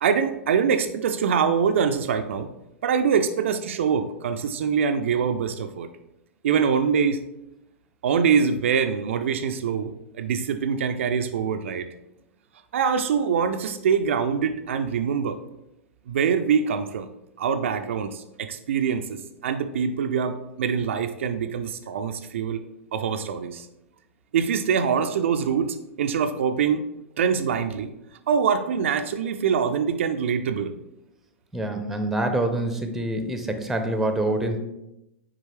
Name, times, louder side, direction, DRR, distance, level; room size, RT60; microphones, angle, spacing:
voice 1, 0.0-2.5 2.8-5.9 6.4-7.2 8.0-11.9 12.7-15.4 16.1-17.1 17.4-22.6 22.9-23.7 24.3-26.9 27.2-27.9 28.3-30.7, right 6 dB, 60° right, 7 dB, 0.4 m, -24 dB
voice 2, 31.5-34.6, right 1 dB, 5° right, 6 dB, 0.7 m, -26 dB
7.4 x 4.9 x 3.1 m, 0.90 s
figure-of-eight pair, 95°, 8 cm